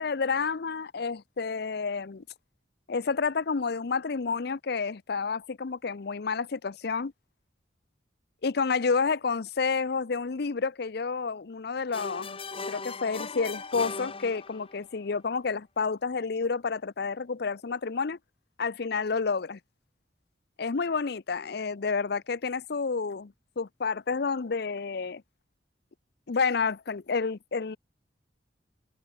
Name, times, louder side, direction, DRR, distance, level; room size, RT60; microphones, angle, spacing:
voice 1, 0.0-2.2 2.9-7.1 8.4-12.4 12.7-18.2 18.6-19.6 20.6-25.2 26.3-27.8, left 5 dB, 65° left, 0.6 m, -30 dB
sound 1, 11.9-14.9, left 4 dB, 30° left, 2.2 m, -38 dB
head